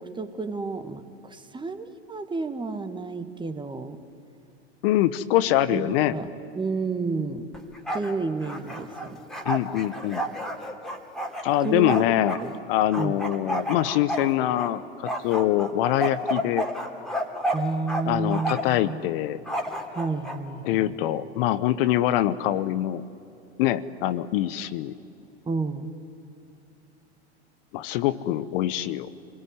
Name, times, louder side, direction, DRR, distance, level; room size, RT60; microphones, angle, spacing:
voice 1, 0.0-4.0 5.7-6.3 6.5-7.6 7.9-9.2 11.6-12.0 12.4-12.5 12.9-13.2 17.5-19.1 19.9-21.0 25.4-25.9, right 4 dB, 15° right, 9 dB, 1.7 m, -31 dB
voice 2, 4.8-6.2 9.4-10.2 11.4-12.4 12.7-16.7 18.0-19.4 20.6-23.0 23.6-24.9 27.7-29.1, left 13 dB, 55° left, 14 dB, 1.0 m, -24 dB
Bark, 7.5-8.1 8.4-12.4 12.9-14.7 15.1-18.0 18.3-18.8 19.5-20.4, equal, ahead, 2.9 m, -30 dB
28.0 x 21.0 x 9.7 m, 2.7 s
hypercardioid pair, 90°, 33 cm